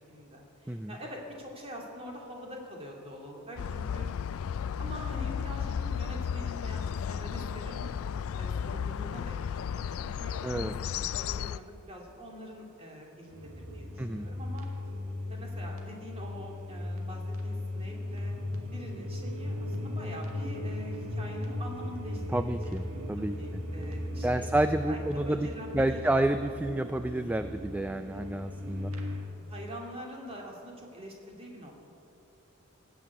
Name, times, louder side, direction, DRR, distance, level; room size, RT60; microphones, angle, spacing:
voice 1, 0.1-4.1 4.8-7.9 8.4-10.7 11.1-14.7 15.3-18.3 18.7-22.6 22.9-26.2 28.1-28.4 28.9-29.2 29.4-31.7, equal, 30° right, -1 dB, 2.7 m, -45 dB
sound 1, 3.6-11.6, left 7 dB, 85° left, 0.4 m, -34 dB
voice 2, 10.4-10.7 14.0-14.3 22.3-23.6 24.2-25.5 25.7-28.9, right 1 dB, 10° right, 9 dB, 0.3 m, -30 dB
sound 2, 13.3-29.3, left 1 dB, 85° right, 1.9 m, -37 dB
18.0 x 7.1 x 8.6 m, 2.7 s
head